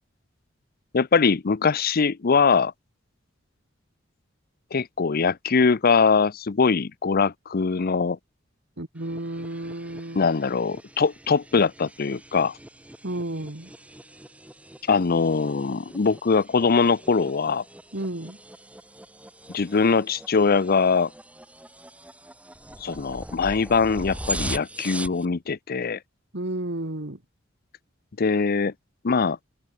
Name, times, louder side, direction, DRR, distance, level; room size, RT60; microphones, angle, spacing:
voice 1, 0.9-2.7 4.7-8.2 10.1-12.5 14.9-17.6 19.5-21.1 22.8-26.0 28.2-28.7 29.0-29.4, left 5 dB, 50° left, 0.6 m, -22 dB
voice 2, 8.8-10.3 13.0-13.7 17.9-18.4 26.3-27.2, right 1 dB, 60° right, 2.4 m, -32 dB
sound 1, 9.0-25.3, right 1 dB, 5° right, 1.0 m, -40 dB
open air
head